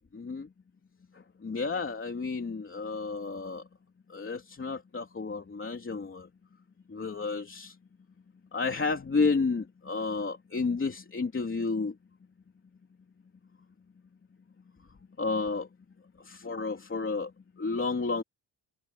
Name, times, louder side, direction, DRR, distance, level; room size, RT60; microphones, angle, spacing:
voice 1, 0.1-0.5 1.4-3.6 4.1-6.3 6.9-7.7 8.5-11.9 15.2-15.7 16.2-17.3 17.6-18.2, left 4 dB, 30° left, 3.2 m, -31 dB
open air
wide cardioid pair, 160°, 43 cm